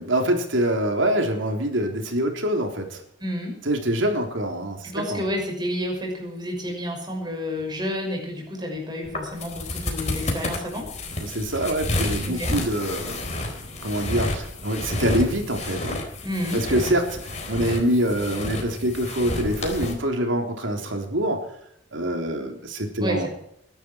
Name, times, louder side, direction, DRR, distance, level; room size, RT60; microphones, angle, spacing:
voice 1, 0.0-3.0 3.7-5.3 11.2-13.2 13.8-16.0 16.5-17.2 17.5-21.5 21.9-23.3, right 1 dB, 90° right, 3 dB, 3.6 m, -25 dB
voice 2, 3.2-3.6 4.9-10.9 12.2-12.6 16.2-16.6 23.0-23.3, left 1 dB, 25° right, 1 dB, 6.2 m, -30 dB
sound 1, 9.0-19.9, left 1 dB, 35° left, 4.0 m, -30 dB
21.5 x 12.0 x 4.7 m, 0.70 s
head